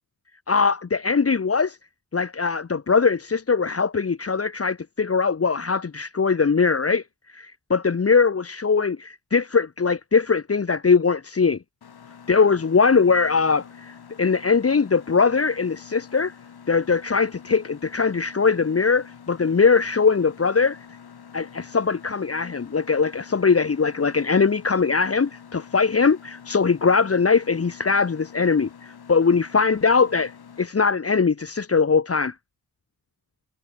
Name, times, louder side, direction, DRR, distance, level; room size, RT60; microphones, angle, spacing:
voice 1, 0.5-1.8 2.1-11.6 12.3-16.3 16.7-20.9 21.3-32.3, left 5 dB, 35° left, 1.4 m, -21 dB
Mechanisms, 11.8-30.7, left 7 dB, 75° left, 7.3 m, -46 dB
cardioid pair, 70°, 39 cm